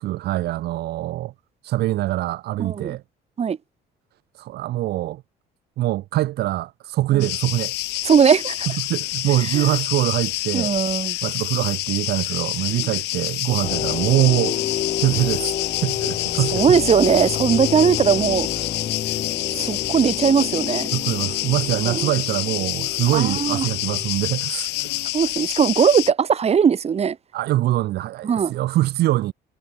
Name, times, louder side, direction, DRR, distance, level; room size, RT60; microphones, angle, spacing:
voice 1, 0.0-1.3 1.6-3.0 4.4-5.2 5.8-7.7 8.8-10.7 11.2-14.6 15.0-16.8 20.9-24.7 27.3-29.3, right 15 dB, 75° right, 1.7 m, -23 dB
voice 2, 2.6-3.0 3.4-3.6 7.1-7.2 8.1-8.7 9.5-9.7 10.5-11.2 12.8-12.9 16.5-18.5 19.6-20.9 21.8-22.1 23.1-23.7 25.1-27.2 28.2-28.5, right 7 dB, 40° right, 2.9 m, -19 dB
sound 1, 7.2-26.1, left 19 dB, 85° left, 4.5 m, -27 dB
sound 2, 13.6-24.1, left 9 dB, 50° left, 3.3 m, -30 dB
cardioid pair, 110°, 17 cm